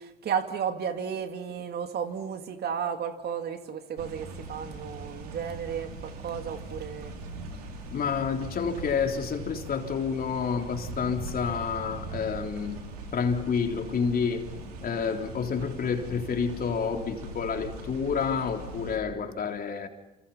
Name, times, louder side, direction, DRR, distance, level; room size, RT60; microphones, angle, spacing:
voice 1, 0.0-7.1, right 7 dB, 60° right, 2.5 m, -33 dB
sound 1, 4.0-19.0, right 2 dB, 90° right, 3.5 m, -41 dB
voice 2, 7.9-12.8 13.1-14.5 14.8-19.9, left 6 dB, 50° left, 3.6 m, -29 dB
28.5 x 27.0 x 5.7 m
hypercardioid pair, 55°, 19 cm